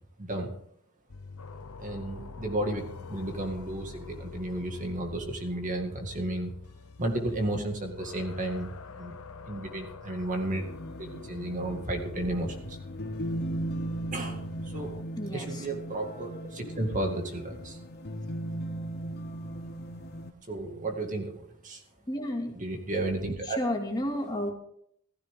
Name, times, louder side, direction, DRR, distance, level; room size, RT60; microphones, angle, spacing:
voice 1, 0.2-0.5 1.8-6.5 7.0-8.7 9.0-9.2 9.5-10.6 11.0-12.8 14.1-15.0 15.3-17.8 20.5-21.8 22.5-23.6, right 1 dB, 35° right, 3 dB, 2.2 m, -33 dB
sound 1, 1.1-15.0, left 4 dB, 80° left, 0.9 m, -46 dB
sound 2, 10.5-20.3, right 1 dB, 50° left, 1.0 m, -37 dB
voice 2, 15.2-15.7 22.1-22.5 23.4-24.5, left 1 dB, 20° left, 1 dB, 2.3 m, -31 dB
16.0 x 14.5 x 3.8 m, 0.68 s
head